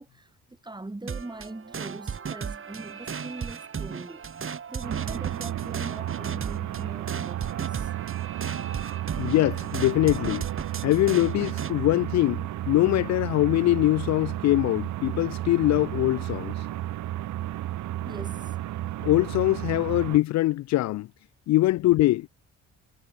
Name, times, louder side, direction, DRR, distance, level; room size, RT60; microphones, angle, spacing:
voice 1, 0.0-4.2 4.7-7.9 11.3-11.6 18.1-18.6, right 2 dB, 15° right, 6.7 m, -41 dB
sound 1, 1.1-11.7, right 6 dB, 45° right, 4.4 m, -36 dB
sound 2, 4.8-20.2, right 14 dB, 75° right, 1.0 m, -33 dB
voice 2, 9.2-10.5 10.8-16.5 19.0-21.1 21.5-22.3, left 16 dB, 65° left, 0.4 m, -23 dB
cardioid pair, 90°, 30 cm